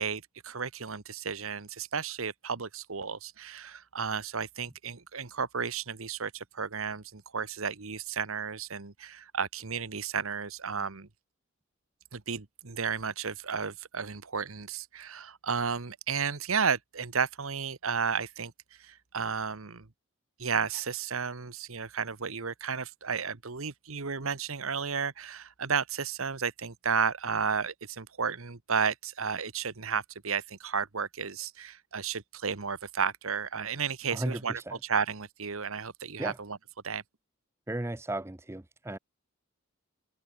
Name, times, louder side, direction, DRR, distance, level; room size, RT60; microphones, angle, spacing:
voice 1, 0.0-11.1 12.1-18.5 18.8-19.9 20.4-36.6 36.8-37.0, right 6 dB, 75° right, 1.3 m, -33 dB
voice 2, 34.1-34.8 36.2-36.4 37.7-39.0, right 1 dB, 10° right, 0.6 m, -35 dB
head